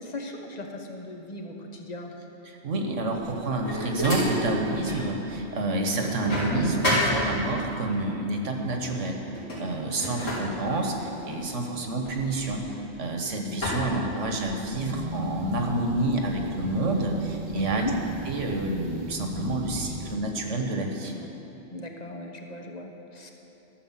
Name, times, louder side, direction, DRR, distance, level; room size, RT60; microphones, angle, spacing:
voice 1, 0.0-2.1 17.5-17.9 21.7-23.3, left 1 dB, 35° left, 3 dB, 1.1 m, -36 dB
voice 2, 2.4-9.2 9.6-12.6 13.0-17.9 18.3-21.1, right 2 dB, 75° right, 2 dB, 1.5 m, -28 dB
sound 1, 3.1-5.1 5.5-7.8 8.6-8.9 9.2-13.1 13.6-14.8, left 1 dB, 90° left, 3.4 m, -31 dB
sound 2, 14.7-20.2, right 1 dB, 45° right, 0.8 m, -37 dB
13.5 x 6.7 x 7.3 m, 3.0 s
omnidirectional pair, 1.3 m